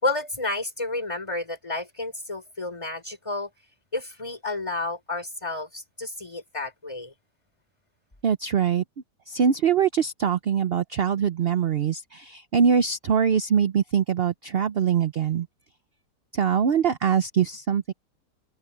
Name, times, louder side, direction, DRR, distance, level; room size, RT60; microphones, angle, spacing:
voice 1, 0.0-3.5 3.9-7.1, left 2 dB, 15° left, 3.7 m, -31 dB
voice 2, 8.2-8.8 9.3-15.5 16.3-17.9, right 7 dB, 55° right, 0.7 m, -23 dB
omnidirectional pair, 1.8 m